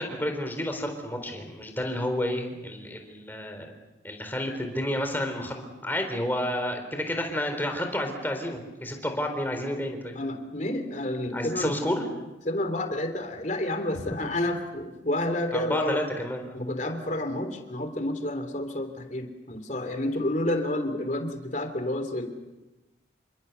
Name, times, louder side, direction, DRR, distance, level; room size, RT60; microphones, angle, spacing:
voice 1, 0.0-3.7 4.0-10.2 11.3-12.1 15.5-16.6, left 1 dB, 10° left, 5 dB, 4.1 m, -30 dB
voice 2, 10.1-12.1 12.4-16.0 16.5-22.3, left 1 dB, 40° left, 7 dB, 3.1 m, -30 dB
28.5 x 25.5 x 6.9 m, 1.0 s
head